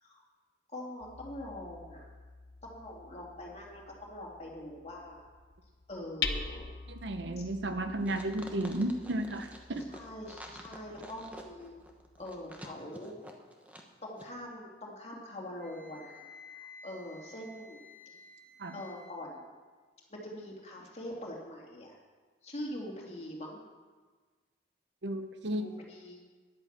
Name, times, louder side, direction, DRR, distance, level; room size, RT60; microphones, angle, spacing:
voice 1, 0.7-2.1 2.6-5.2 5.9-6.7 7.4-7.5 9.9-11.7 12.2-13.1 14.0-17.8 18.7-19.5 20.1-22.0 22.4-23.6 25.5-26.2, left 1 dB, 35° left, -2 dB, 2.5 m, -43 dB
Hammer, 1.0-12.7, left 5 dB, 60° left, 0.9 m, -45 dB
voice 2, 6.9-9.8 18.6-18.8 25.0-25.7, right 1 dB, 80° right, 8 dB, 0.9 m, -33 dB
sound 1, 8.0-13.9 14.2-14.3, equal, 10° right, 1.1 m, -48 dB
Wind instrument woodwind instrument, 15.6-19.1, left 4 dB, 10° left, 2.7 m, -53 dB
10.5 x 9.0 x 7.3 m, 1.4 s
head